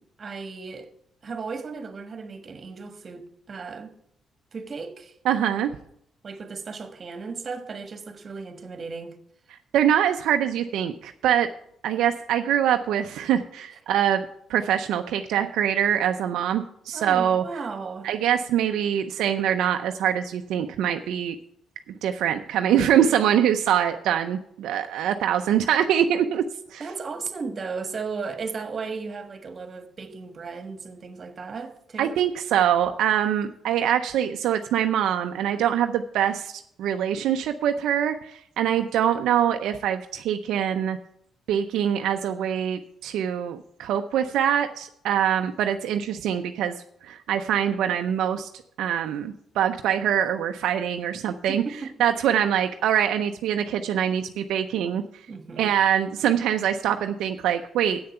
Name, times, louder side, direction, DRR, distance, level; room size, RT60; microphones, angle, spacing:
voice 1, 0.2-0.9 1.2-3.9 4.5-5.2 6.2-9.2 16.9-18.1 26.8-32.2 51.5-51.9 55.3-55.7, right 4 dB, 40° right, 1.5 m, -35 dB
voice 2, 5.3-5.7 9.7-11.5 11.8-14.2 14.5-17.4 18.0-21.4 22.0-26.4 26.7-26.8 32.0-41.0 41.5-46.7 47.0-48.5 48.8-51.6 52.0-55.0 55.6-58.0, right 9 dB, 85° right, 0.5 m, -24 dB
8.0 x 6.7 x 7.9 m
cardioid pair, 90°, 0 cm